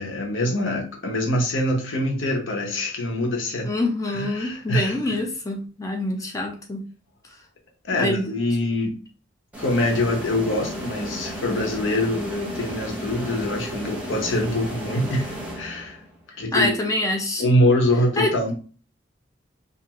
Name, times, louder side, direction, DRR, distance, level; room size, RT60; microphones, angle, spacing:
voice 1, 0.0-3.7 4.1-5.2 7.8-8.9 9.6-16.0 16.4-16.7 17.4-18.5, left 1 dB, 75° left, 0.8 m, -24 dB
voice 2, 3.6-6.9 7.9-8.3 16.5-17.4 18.2-18.5, left 1 dB, 15° left, 0.4 m, -25 dB
sound 1, 9.5-16.1, right 1 dB, 10° right, 0.7 m, -34 dB
2.5 x 2.4 x 2.9 m
head